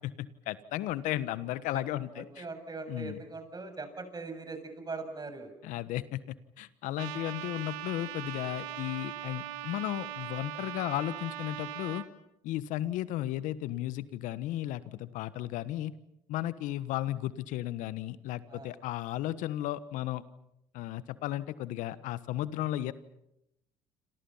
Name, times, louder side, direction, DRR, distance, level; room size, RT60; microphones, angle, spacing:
voice 1, 0.0-2.4 2.9-3.2 5.6-12.0 12.4-15.9 16.3-20.2 20.7-22.9, left 14 dB, 75° left, 16 dB, 1.4 m, -34 dB
voice 2, 2.1-5.5 18.5-18.7, right 3 dB, 30° right, 7 dB, 7.3 m, -41 dB
Trumpet, 7.0-12.1, right 13 dB, 80° right, 2.1 m, -40 dB
28.0 x 27.5 x 5.8 m, 0.83 s
hypercardioid pair, 60°, 13 cm